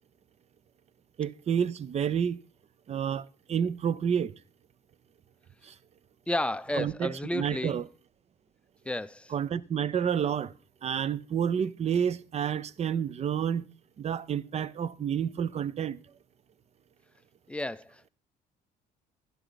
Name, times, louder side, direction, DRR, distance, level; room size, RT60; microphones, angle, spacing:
voice 1, 1.2-2.4 2.9-4.3 5.6-5.7 6.7-7.8 9.3-10.5 10.8-13.7 14.0-16.0, right 8 dB, 40° right, 0.7 m, -29 dB
voice 2, 6.3-7.8 8.8-9.3 17.5-18.1, left 1 dB, 5° left, 0.5 m, -32 dB
12.5 x 11.0 x 4.0 m
cardioid pair, 110°, 17 cm